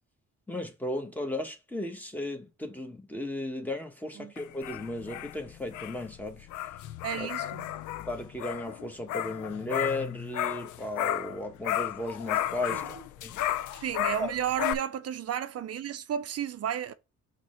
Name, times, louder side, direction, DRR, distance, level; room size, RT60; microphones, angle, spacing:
voice 1, 0.5-6.5 7.2-7.3 7.9-12.8 13.2-13.4 14.2-14.3, left 1 dB, 5° left, 1.4 m, -35 dB
sound 1, 4.4-11.4 11.6-14.7, left 12 dB, 80° left, 0.5 m, -33 dB
voice 2, 7.0-7.7 12.7-12.9 13.7-16.9, right 9 dB, 55° right, 0.6 m, -33 dB
5.8 x 3.3 x 5.7 m
cardioid pair, 90°, 30 cm